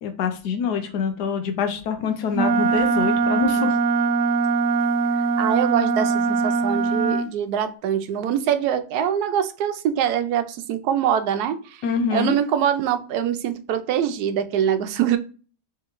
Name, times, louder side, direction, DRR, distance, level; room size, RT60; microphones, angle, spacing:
voice 1, 0.0-3.8 11.8-12.4, left 6 dB, 85° left, 6 dB, 1.3 m, -25 dB
Wind instrument woodwind instrument, 2.3-7.3, right 4 dB, 60° right, 0.7 m, -21 dB
voice 2, 5.2-11.8 12.1-15.2, right 9 dB, 80° right, 9 dB, 1.1 m, -24 dB
3.6 x 3.3 x 2.9 m, 0.37 s
omnidirectional pair, 1.7 m